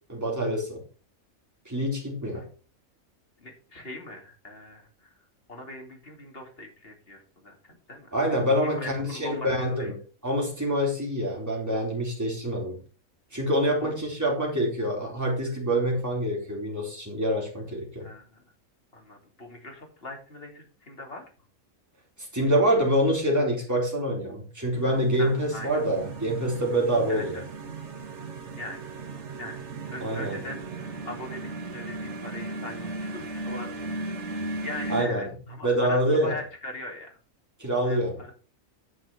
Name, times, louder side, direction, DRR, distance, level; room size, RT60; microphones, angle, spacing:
voice 1, 0.1-0.8 1.7-2.5 8.1-9.9 10.2-12.8 13.3-18.1 22.3-27.4 30.0-30.4 34.9-35.3 35.6-36.4 37.6-38.2, equal, 10° right, -2 dB, 4.1 m, -26 dB
voice 2, 3.4-5.1 5.5-8.1 8.6-9.9 13.8-14.0 18.0-18.4 18.9-21.2 25.2-25.8 27.1-27.4 28.6-28.9 29.4-29.6 29.9-30.6 31.1-34.1 34.6-37.1 37.8-38.3, left 1 dB, 45° left, 2 dB, 3.0 m, -40 dB
sound 1, 24.7-35.0, right 2 dB, 55° right, 1.7 m, -36 dB
9.9 x 6.1 x 5.6 m, 0.37 s
omnidirectional pair, 1.4 m